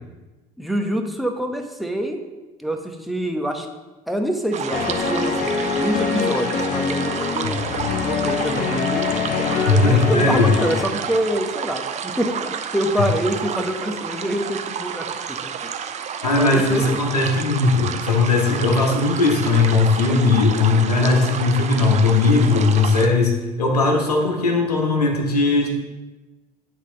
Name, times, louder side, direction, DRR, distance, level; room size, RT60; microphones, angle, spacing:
voice 1, 0.6-2.2 2.6-3.7 4.1-7.6 8.0-9.1 9.4-15.7 16.3-16.8, right 1 dB, ahead, 4 dB, 1.0 m, -26 dB
sound 1, 4.5-23.1, right 7 dB, 35° right, 0.6 m, -30 dB
sound 2, 4.7-10.9, left 5 dB, 40° left, 0.8 m, -24 dB
voice 2, 9.7-10.5 16.2-25.7, left 3 dB, 85° left, 2 dB, 1.0 m, -18 dB
9.2 x 3.6 x 3.8 m, 1.1 s
hypercardioid pair, 60°, 20 cm